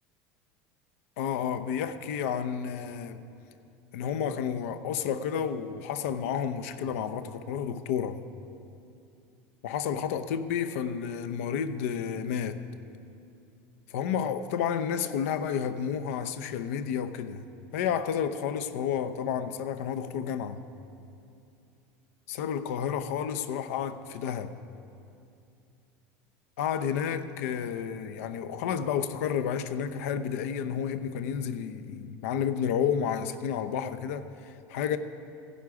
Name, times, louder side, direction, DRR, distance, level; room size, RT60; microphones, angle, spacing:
voice 1, 1.2-3.2 3.9-8.2 9.6-12.6 13.9-17.4 17.7-20.6 22.3-24.5 26.6-35.0, left 8 dB, 85° left, 0.7 m, -31 dB
15.5 x 11.0 x 4.9 m
cardioid pair, 160°, 7 cm